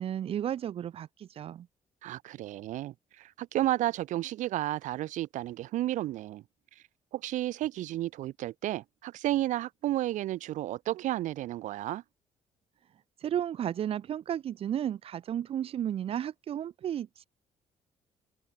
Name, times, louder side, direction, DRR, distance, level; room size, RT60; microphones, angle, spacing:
voice 1, 0.0-1.7 13.2-17.3, right 10 dB, 50° right, 2.8 m, -33 dB
voice 2, 2.0-6.4 6.8-6.9 7.1-12.0, right 14 dB, 85° right, 5.7 m, -32 dB
cardioid pair, 165°, 13 cm